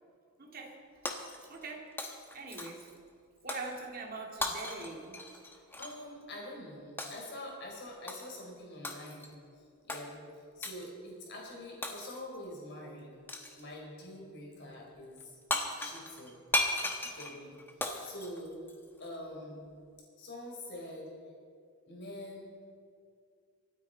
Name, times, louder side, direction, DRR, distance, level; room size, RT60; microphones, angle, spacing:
voice 1, 0.4-0.8 1.5-1.9 2.3-2.9 3.4-5.2, right 3 dB, 40° right, 0 dB, 2.2 m, -42 dB
Shatter, 1.1-1.7 2.0-2.9 3.5-3.7 4.4-6.0 7.0-7.3 8.1-8.4 8.8-9.3 9.9-10.1 10.6-10.9 11.8-12.4 13.3-13.7 15.2-15.3 15.5-19.1, left 1 dB, 10° left, 1.0 m, -36 dB
voice 2, 5.5-9.3 9.9-10.2 10.6-13.1 13.5-15.3 15.8-16.3 17.0-18.6 19.0-19.7 20.2-21.1 21.9-22.7, left 1 dB, 50° left, -2 dB, 4.0 m, -45 dB
24.5 x 9.0 x 4.5 m, 2.3 s
head